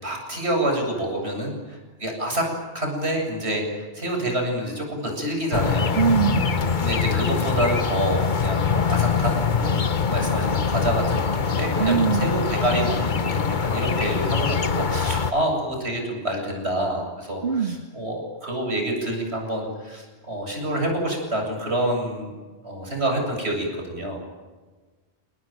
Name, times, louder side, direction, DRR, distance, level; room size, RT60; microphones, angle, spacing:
voice 1, 0.0-2.5 2.7-6.0 6.8-9.8 10.1-22.3 22.6-24.2, right 1 dB, 85° right, 1 dB, 8.4 m, -27 dB
sound 1, 5.5-15.3, left 6 dB, 50° left, 1.2 m, -23 dB
voice 2, 6.0-6.9 11.8-12.4 17.4-17.8, right 6 dB, 70° right, 9 dB, 1.7 m, -23 dB
29.0 x 20.0 x 9.3 m, 1.3 s
omnidirectional pair, 1.1 m